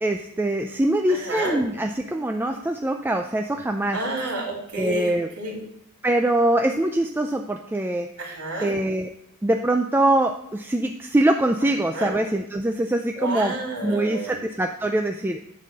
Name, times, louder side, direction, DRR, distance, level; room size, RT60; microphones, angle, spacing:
voice 1, 0.0-4.0 4.8-5.3 6.0-8.1 8.6-9.1 9.4-13.5 13.8-15.4, right 1 dB, 10° right, 5 dB, 0.4 m, -23 dB
voice 2, 1.1-1.6 3.9-5.6 8.2-8.7 11.9-12.1 13.1-14.4, right 1 dB, 85° right, -2 dB, 3.6 m, -30 dB
10.0 x 4.2 x 7.4 m, 0.76 s
head